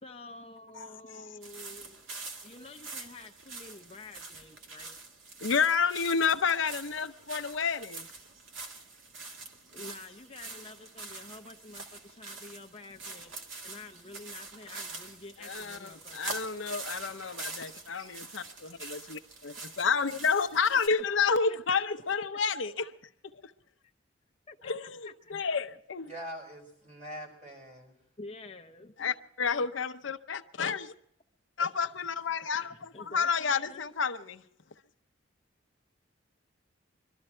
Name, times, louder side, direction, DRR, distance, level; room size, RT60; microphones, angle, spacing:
voice 1, 0.0-2.1 2.4-5.0 9.7-13.3 13.6-16.4 21.5-22.0 23.8-23.9 24.5-24.7 25.0-25.3 28.2-29.2 32.4-34.0, left 2 dB, 30° left, 0.8 m, -49 dB
voice 2, 0.8-1.2 5.4-8.1 15.4-22.9 24.6-26.1 29.0-30.9 31.6-34.4, left 5 dB, 75° left, 0.8 m, -30 dB
sound 1, 1.4-20.9, right 3 dB, 90° right, 2.1 m, -45 dB
voice 3, 26.0-28.0, equal, 40° right, 5.0 m, -43 dB
23.0 x 13.0 x 4.4 m
head